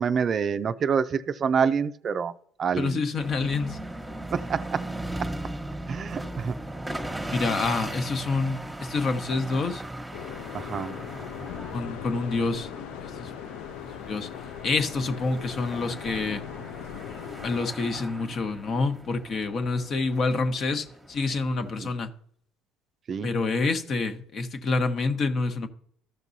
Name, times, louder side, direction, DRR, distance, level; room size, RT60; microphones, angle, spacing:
voice 1, 0.0-2.3 2.6-3.0 4.3-4.8 5.2-5.3 5.9-6.6 10.5-11.0 21.8-21.9 23.1-23.3, right 6 dB, 45° right, 0.4 m, -27 dB
voice 2, 2.8-3.8 7.2-9.8 11.7-12.7 13.0-13.3 14.0-14.3 14.6-16.4 17.4-22.1 23.2-25.7, left 3 dB, 50° left, 1.1 m, -27 dB
sound 1, 3.2-21.8, right 1 dB, 5° right, 1.2 m, -38 dB
sound 2, 10.1-17.6, left 11 dB, 75° left, 0.3 m, -39 dB
14.0 x 5.9 x 2.7 m
hypercardioid pair, 65°, 0 cm